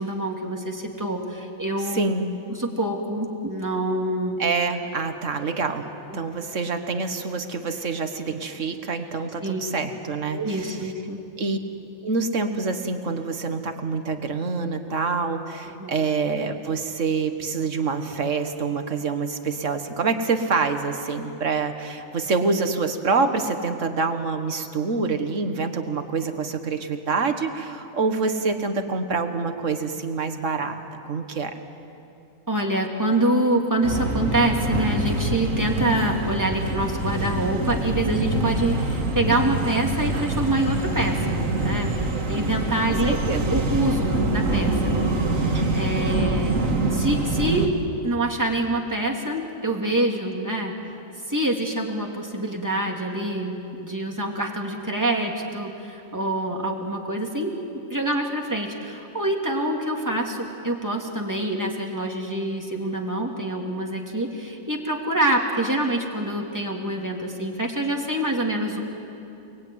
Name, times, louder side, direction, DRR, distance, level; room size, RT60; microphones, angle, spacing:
voice 1, 0.0-2.1 2.5-4.4 6.1-6.5 9.4-9.6 10.3-11.2 15.8-15.9 32.5-43.2 43.5-46.6 46.9-47.8 48.0-50.8 51.3-57.5 57.9-68.8, right 1 dB, 15° right, 1 dB, 2.7 m, -26 dB
voice 2, 1.9-2.4 4.4-5.9 6.1-10.8 11.4-11.6 12.0-30.8 31.1-31.6 42.9-43.6 45.5-45.8, right 4 dB, 70° right, 7 dB, 1.9 m, -26 dB
sound 1, 33.8-47.7, right 2 dB, 85° right, 2.4 m, -25 dB
29.5 x 20.5 x 9.4 m, 2.8 s
omnidirectional pair, 1.3 m